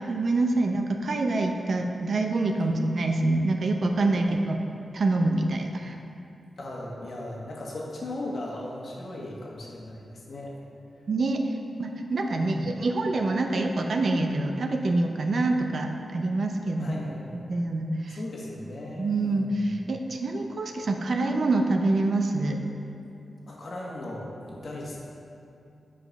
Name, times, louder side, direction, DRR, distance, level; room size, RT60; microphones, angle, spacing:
voice 1, 0.1-4.6 4.9-6.0 11.1-11.4 11.8-16.9 17.5-18.2 19.0-22.6, right 2 dB, 55° right, 4 dB, 0.6 m, -26 dB
voice 2, 4.1-4.4 6.6-10.6 12.3-12.7 16.8-17.4 18.0-19.9 23.5-25.0, left 1 dB, 50° left, -3 dB, 1.5 m, -38 dB
7.7 x 5.0 x 5.9 m, 2.6 s
wide cardioid pair, 125°, 0 cm